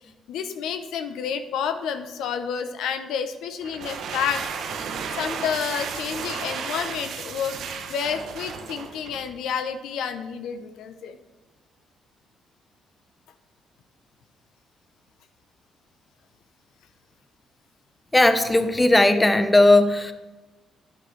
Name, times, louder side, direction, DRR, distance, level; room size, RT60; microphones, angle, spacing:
voice 1, 0.3-4.5 5.1-7.6 7.9-11.2, left 7 dB, 85° left, 9 dB, 0.6 m, -29 dB
sound 1, 3.6-9.3, right 6 dB, 75° right, 1.0 m, -33 dB
voice 2, 18.1-20.1, left 2 dB, 15° left, 9 dB, 0.7 m, -17 dB
9.8 x 9.1 x 3.2 m, 1.1 s
cardioid pair, 90°, 0 cm